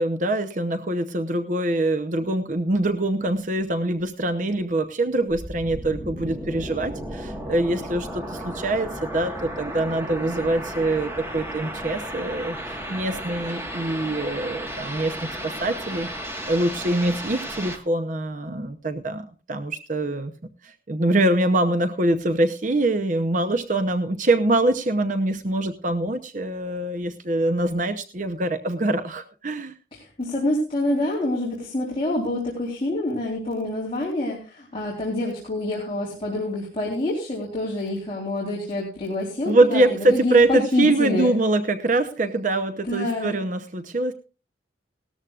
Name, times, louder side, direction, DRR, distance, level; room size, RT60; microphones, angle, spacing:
voice 1, 0.0-16.1 16.5-20.3 20.6-29.7 39.5-44.1, right 2 dB, 45° right, 7 dB, 0.8 m, -24 dB
sound 1, 5.3-17.8, equal, 15° right, 1.5 m, -34 dB
voice 2, 29.9-39.8 40.1-41.3 42.8-43.4, left 1 dB, 30° left, -4 dB, 3.6 m, -27 dB
18.0 x 13.5 x 2.4 m, 0.34 s
head